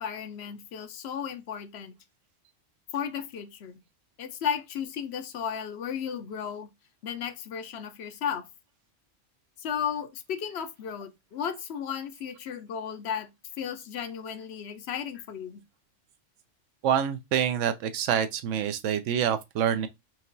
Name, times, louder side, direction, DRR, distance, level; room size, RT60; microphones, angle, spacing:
voice 1, 0.0-1.9 2.9-3.8 4.2-6.7 7.0-8.5 9.6-13.3 13.6-15.6, left 8 dB, 70° left, 0.8 m, -34 dB
voice 2, 16.8-19.9, right 9 dB, 80° right, 0.9 m, -26 dB
4.4 x 2.9 x 2.6 m
omnidirectional pair, 1.2 m